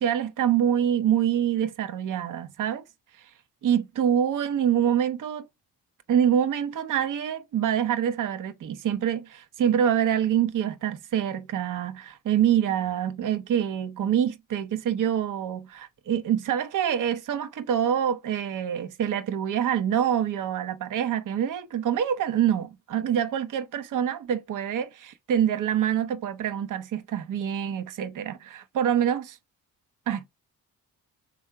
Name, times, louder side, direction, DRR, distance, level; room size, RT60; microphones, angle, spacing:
voice 1, 0.0-2.8 3.6-5.5 6.1-29.4 30.1-30.3, right 9 dB, 55° right, 0.7 m, -26 dB
3.6 x 2.3 x 4.4 m
supercardioid pair, 55°, 39 cm